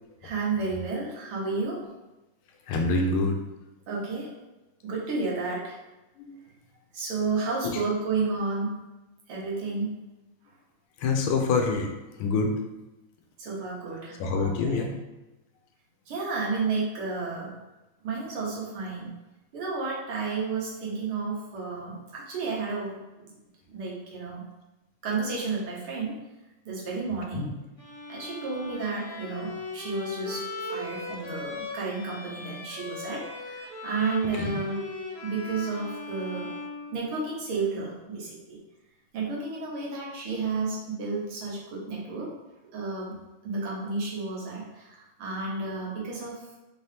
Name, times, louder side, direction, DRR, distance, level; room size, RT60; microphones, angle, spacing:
voice 1, 0.2-1.8 3.9-4.3 4.8-5.8 6.9-8.8 9.3-10.0 13.4-14.8 16.1-17.5 18.0-19.1 19.5-23.0 23.7-24.4 25.0-26.2 26.7-27.5 28.1-34.8 35.2-36.5 36.9-38.6 39.1-42.3 42.7-43.2 43.4-46.4, right 4 dB, 90° right, -4 dB, 2.0 m, -31 dB
voice 2, 2.7-3.4 6.2-6.4 7.6-7.8 11.0-11.9 12.2-12.6 14.2-14.9 27.3-27.5 34.3-34.5, left 3 dB, 85° left, 3 dB, 1.5 m, -26 dB
Bowed string instrument, 27.8-37.5, left 3 dB, 35° left, 0.5 m, -38 dB
4.4 x 2.8 x 3.3 m, 1.0 s
omnidirectional pair, 2.3 m